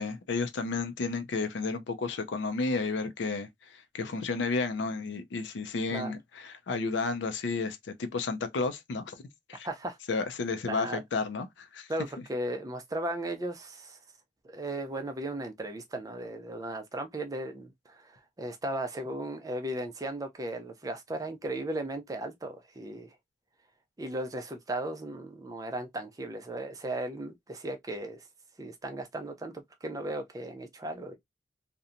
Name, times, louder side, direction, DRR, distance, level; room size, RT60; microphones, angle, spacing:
voice 1, 0.0-9.1 9.5-9.7 10.1-11.9, left 4 dB, 70° left, 0.4 m, -32 dB
voice 2, 9.6-10.0 10.7-11.0 11.9-14.0 14.4-23.2 24.0-28.2 28.6-31.2, right 1 dB, 20° right, 0.4 m, -36 dB
2.7 x 2.1 x 2.4 m
head